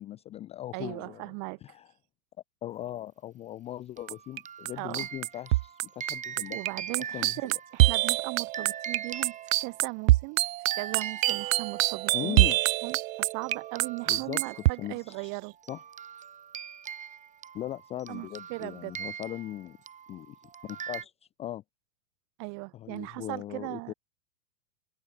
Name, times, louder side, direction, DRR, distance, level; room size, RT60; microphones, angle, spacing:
voice 1, 0.0-1.3 1.6-1.9 2.6-6.6 7.0-7.4 12.1-12.6 14.1-15.3 15.7-15.8 17.5-19.8 20.1-20.4 20.6-21.1 21.4-21.6 22.7-23.9, left 13 dB, 15° left, 0.4 m, -39 dB
voice 2, 0.7-1.6 4.8-5.1 6.5-9.4 9.6-10.4 10.8-12.4 12.8-15.5 18.1-18.9 22.4-23.9, right 34 dB, 40° right, 2.2 m, -38 dB
sound 1, 4.0-10.2 10.7-12.4 12.9-13.0 13.3-21.0, right 8 dB, 15° right, 1.4 m, -42 dB
sound 2, 4.1-4.4 4.7-14.7, right 17 dB, 65° right, 0.5 m, -26 dB
open air
hypercardioid pair, 115°, 44 cm